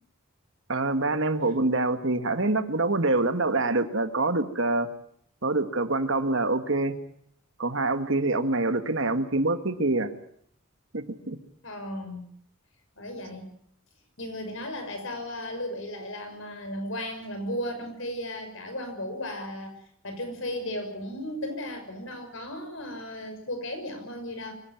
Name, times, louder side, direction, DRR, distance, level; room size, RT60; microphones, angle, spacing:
voice 1, 0.7-4.9 5.4-7.0 7.6-10.1 10.9-11.4, right 2 dB, 60° right, 9 dB, 1.8 m, -25 dB
voice 2, 11.6-12.2 13.0-13.5 14.2-19.7 20.0-24.5, left 1 dB, 65° left, 7 dB, 6.2 m, -35 dB
24.5 x 16.5 x 9.2 m, 0.66 s
head